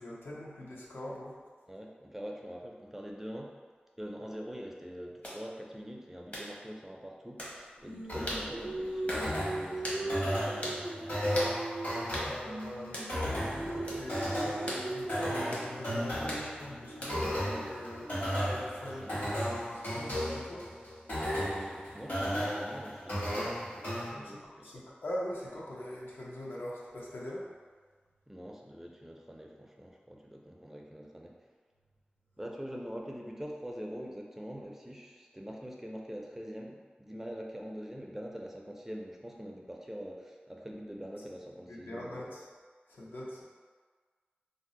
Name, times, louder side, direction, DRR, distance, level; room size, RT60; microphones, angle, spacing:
voice 1, 0.0-1.4 12.0-20.7 24.6-27.5 41.7-42.4 42.9-43.4, left 1 dB, 85° left, -5 dB, 0.6 m, -42 dB
voice 2, 1.7-3.6 4.0-11.3 18.9-19.2 21.3-24.7 28.3-31.4 32.4-42.4, equal, 10° right, 0 dB, 0.4 m, -44 dB
sound 1, 5.2-5.4 6.3-6.5 7.4-7.6 8.3-8.5 9.1-9.3 9.8-10.0 10.6-10.8 11.3-11.5 12.1-12.3 12.9-13.1 13.9-14.0 14.7-14.9 15.5-15.7 16.3-16.5 17.0-17.3, equal, 45° left, 0.8 m, -38 dB
Singing, 7.9-12.2 12.4-18.4, right 2 dB, 70° right, 0.5 m, -40 dB
sound 2, 8.1-24.1, equal, 65° left, 1.3 m, -35 dB
2.5 x 2.0 x 3.7 m, 1.5 s
wide cardioid pair, 70°, 3 cm